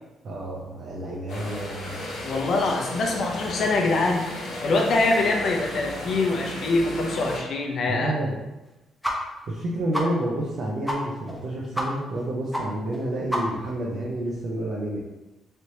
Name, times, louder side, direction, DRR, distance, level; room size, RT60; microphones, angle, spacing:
voice 1, 0.2-2.2 7.9-8.4 9.5-15.0, right 1 dB, 60° right, -4 dB, 0.6 m, -29 dB
sound 1, 1.3-7.4, left 1 dB, 80° left, 0.9 m, -35 dB
voice 2, 2.2-8.2, left 2 dB, 60° left, 1 dB, 0.6 m, -24 dB
sound 2, 9.0-9.2 9.5-9.6 9.9-10.1 10.4-10.5 10.9-11.0 11.3-11.4 11.7-11.9 12.1-12.2 12.5-12.6 12.9-13.0 13.3-13.7, equal, ahead, 0.7 m, -28 dB
3.2 x 3.0 x 2.8 m, 1.0 s
cardioid pair, 90°, 0 cm